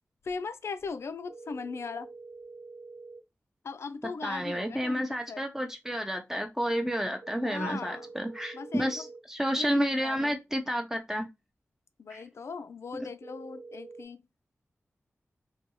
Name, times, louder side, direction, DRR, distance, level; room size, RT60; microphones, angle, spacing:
voice 1, 0.2-2.1 3.6-5.4 7.4-8.1 8.5-9.0 9.6-10.3 12.0-14.2, left 4 dB, 65° left, 0.3 m, -38 dB
sound 1, 1.3-3.2 7.2-9.2 13.2-14.1, right 3 dB, 55° right, 0.5 m, -46 dB
voice 2, 4.2-11.3 12.1-12.2, equal, 10° right, 0.6 m, -30 dB
2.6 x 2.3 x 2.8 m
wide cardioid pair, 75°, 5 cm